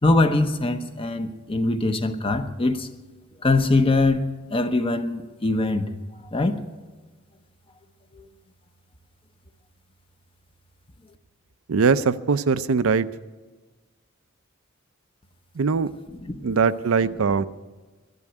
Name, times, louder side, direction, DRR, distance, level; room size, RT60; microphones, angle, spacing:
voice 1, 0.0-2.9 3.4-5.9 6.2-6.6 8.1-8.3 16.2-16.6, left 2 dB, 25° left, 0.8 m, -23 dB
voice 2, 11.7-13.1 15.6-15.9 16.4-17.4, right 5 dB, 80° right, 0.5 m, -21 dB
11.5 x 11.0 x 9.9 m
head